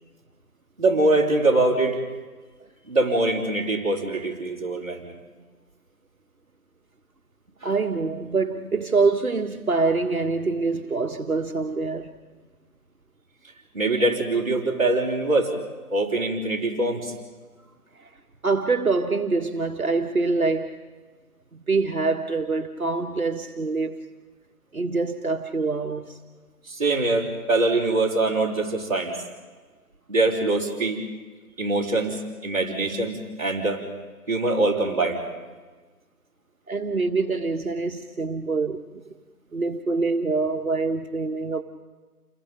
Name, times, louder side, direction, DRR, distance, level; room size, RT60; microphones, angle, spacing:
voice 1, 0.8-2.0 2.9-5.2 13.7-15.5 15.9-17.1 26.7-29.2 30.1-31.0 31.6-33.8 34.3-35.2, right 2 dB, 25° right, 4.2 m, -23 dB
voice 2, 7.6-12.1 18.0-18.1 18.4-20.7 21.5-24.1 24.7-26.2 36.7-38.8 39.5-41.6, right 3 dB, 65° right, 1.8 m, -25 dB
30.0 x 22.0 x 5.2 m
figure-of-eight pair, 175°, 46 cm